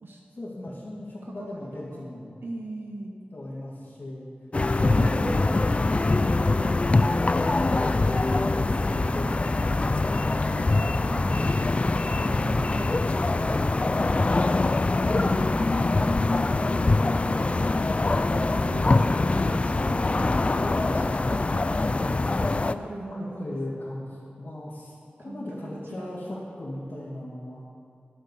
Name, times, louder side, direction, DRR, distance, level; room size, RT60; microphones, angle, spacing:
voice 1, 0.3-2.4 3.3-4.3 4.7-6.1 8.3-10.1 10.6-11.7 12.3-15.1 22.0-22.8 23.1-24.9 25.2-27.6, left 1 dB, 55° left, -9 dB, 2.3 m, -39 dB
voice 2, 1.4-2.0 2.4-3.2 4.8-5.4 8.3-9.5 10.5-11.4 12.3-13.0 17.2-17.6 18.1-19.1 19.4-23.5 23.8-23.9 25.3-26.5, right 2 dB, 85° right, 0 dB, 0.9 m, -40 dB
sound 1, 4.5-22.7, left 2 dB, 35° left, 0.3 m, -23 dB
11.0 x 6.4 x 7.2 m, 2.5 s
wide cardioid pair, 80°, 4 cm